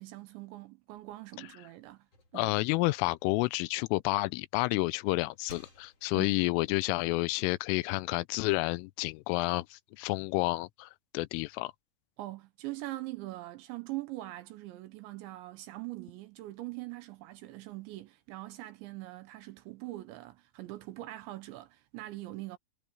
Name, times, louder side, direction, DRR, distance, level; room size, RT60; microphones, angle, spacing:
voice 1, 0.0-2.1 2.3-2.6 6.1-6.4 12.2-22.6, right 18 dB, 75° right, 2.9 m, -42 dB
sound 1, 0.9-4.1 4.6-6.4, left 2 dB, 30° left, 4.2 m, -58 dB
voice 2, 2.3-11.7, left 22 dB, 85° left, 3.1 m, -30 dB
omnidirectional pair, 5.8 m